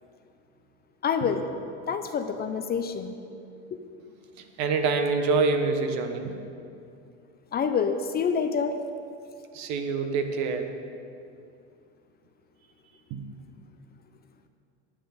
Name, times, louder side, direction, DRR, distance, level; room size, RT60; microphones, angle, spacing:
voice 1, 1.0-1.5 1.9-3.2 3.7-3.8 7.5-8.8, left 6 dB, 30° left, 8 dB, 0.6 m, -27 dB
voice 2, 4.6-6.3 9.5-10.7 13.1-13.2, right 4 dB, 55° right, 6 dB, 1.2 m, -26 dB
9.4 x 8.9 x 5.2 m, 2.5 s
supercardioid pair, 105°, 33 cm